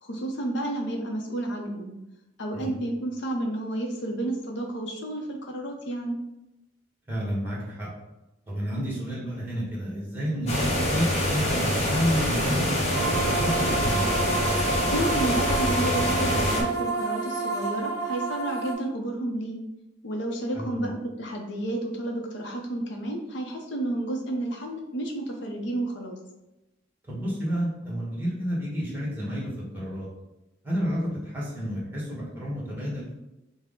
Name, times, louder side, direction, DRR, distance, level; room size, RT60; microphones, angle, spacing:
voice 1, 0.0-1.9 2.4-6.2 14.9-19.6 20.0-26.2, right 1 dB, 60° left, 2 dB, 0.6 m, -31 dB
voice 2, 7.1-7.9 8.5-14.0 20.5-20.8 27.0-30.1 30.6-33.1, equal, 10° right, -5 dB, 1.2 m, -30 dB
sound 1, 10.5-16.6, left 1 dB, 35° left, 0.9 m, -25 dB
sound 2, 12.9-18.7, right 4 dB, 20° left, 1.2 m, -29 dB
5.8 x 2.1 x 3.6 m, 0.96 s
head